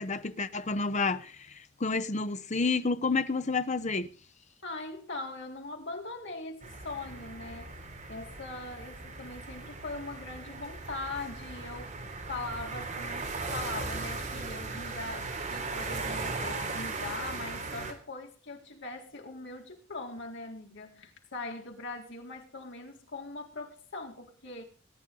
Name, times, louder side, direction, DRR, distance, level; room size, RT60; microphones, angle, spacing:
voice 1, 0.0-4.1, left 4 dB, 40° left, 0.9 m, -30 dB
voice 2, 4.6-7.8 8.1-24.6, left 2 dB, 65° left, 4.1 m, -41 dB
sound 1, 6.6-17.9, right 3 dB, 40° right, 3.9 m, -38 dB
19.5 x 10.0 x 5.5 m
head